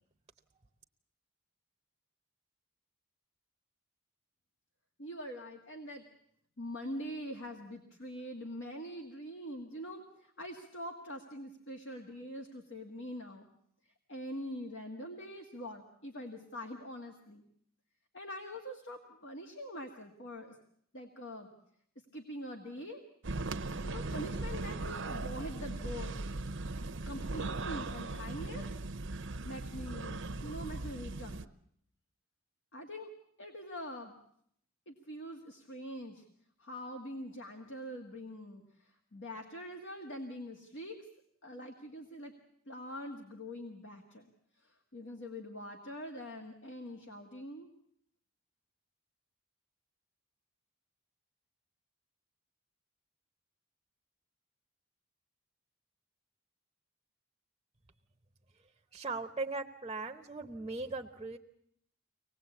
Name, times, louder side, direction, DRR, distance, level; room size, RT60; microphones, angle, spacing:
voice 1, 5.0-6.1 6.6-13.5 14.1-17.4 18.1-20.6 20.9-21.5 22.1-23.0 23.8-26.3 27.1-28.6 29.4-31.5 32.7-33.1 33.4-34.2 34.9-36.2 36.6-41.1 41.4-42.3 42.7-44.3 44.6-47.7, equal, 60° left, 4 dB, 1.8 m, -44 dB
sound 1, 23.2-31.4, right 2 dB, 60° right, 0.9 m, -38 dB
voice 2, 58.9-61.4, right 3 dB, 20° right, 5 dB, 0.9 m, -38 dB
24.5 x 19.0 x 8.4 m, 0.69 s
head